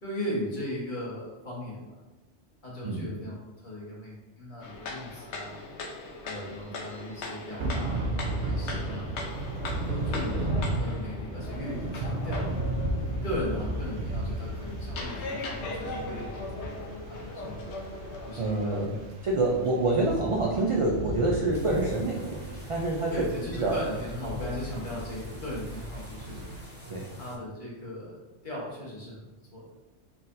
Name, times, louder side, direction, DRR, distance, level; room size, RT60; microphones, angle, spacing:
voice 1, 0.0-2.0 2.6-5.6 6.2-8.1 8.4-9.2 9.9-12.4 13.2-16.8 17.2-17.6 18.2-18.8 19.5-19.6 23.1-26.4 27.1-29.6, left 1 dB, 45° left, -5 dB, 1.4 m, -37 dB
sound 1, 4.6-18.9, left 2 dB, 75° left, 1.0 m, -40 dB
Thunder / Rain, 7.6-26.6, right 1 dB, 75° right, 1.0 m, -35 dB
voice 2, 18.4-19.0 19.2-23.8 26.9-27.1, right 2 dB, 50° right, -3 dB, 0.3 m, -27 dB
sound 2, 21.5-27.4, left 1 dB, 10° right, 0.6 m, -48 dB
4.1 x 3.8 x 2.5 m, 1.1 s
omnidirectional pair, 1.2 m